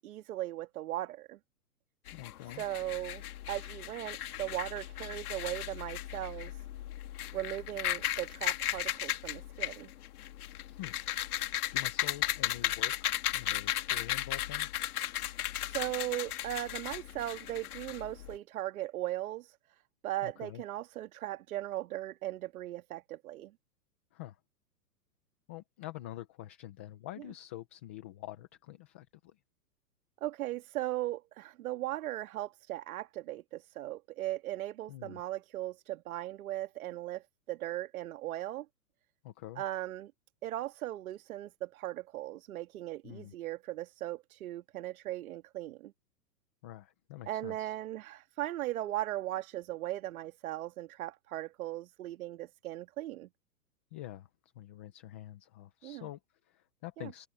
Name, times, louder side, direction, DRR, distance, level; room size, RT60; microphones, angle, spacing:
voice 1, 0.0-1.4 2.6-6.6 7.3-9.9 15.6-19.6 20.0-23.5 30.2-38.7 39.6-40.1 40.4-45.9 47.3-53.3 55.8-56.1 57.0-57.1, right 15 dB, 55° right, 2.0 m, -38 dB
sound 1, 2.1-18.3, left 13 dB, 60° left, 2.5 m, -36 dB
voice 2, 2.1-2.6 10.6-11.0 11.4-12.9 13.3-14.7 20.2-20.6 24.1-24.4 25.5-29.4 34.9-35.2 39.2-39.6 43.0-43.3 46.6-47.7 53.9-54.3 54.6-57.3, left 14 dB, 10° left, 0.3 m, -46 dB
hypercardioid pair, 125°, 50 cm